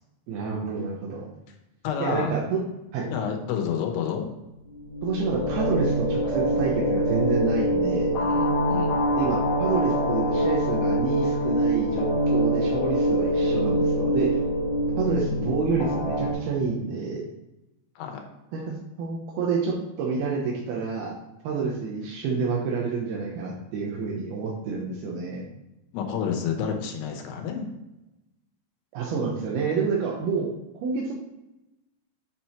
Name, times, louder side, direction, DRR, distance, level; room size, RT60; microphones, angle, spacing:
voice 1, 0.3-1.3 2.0-2.6 2.9-3.1 5.0-8.2 9.2-14.4 15.0-17.2 18.5-18.6 19.0-21.1 21.4-25.5 28.9-30.5 30.8-31.1, right 5 dB, 80° right, -3 dB, 2.9 m, -28 dB
voice 2, 1.8-2.3 3.1-4.3 8.1-9.1 18.0-18.2 25.9-27.7, left 7 dB, 90° left, 3 dB, 3.0 m, -29 dB
sound 1, 4.7-16.3, equal, 70° left, 1.7 m, -24 dB
8.8 x 4.6 x 4.4 m, 0.95 s
omnidirectional pair, 4.5 m